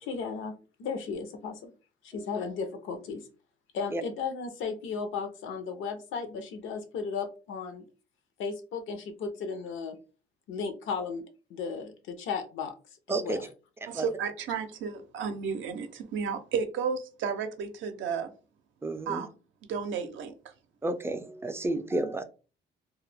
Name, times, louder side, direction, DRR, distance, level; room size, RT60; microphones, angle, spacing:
voice 1, 0.0-0.5 0.8-1.7 2.0-3.2 3.7-7.8 8.4-10.0 10.5-11.2 11.5-12.7 13.2-13.5, left 5 dB, 80° left, 0.6 m, -35 dB
voice 2, 13.9-18.3 19.1-19.3 19.7-20.3, right 6 dB, 75° right, 0.5 m, -32 dB
voice 3, 18.8-19.3 20.8-22.2, right 2 dB, 10° right, 0.3 m, -31 dB
2.3 x 2.0 x 3.2 m
cardioid pair, 90°, 20 cm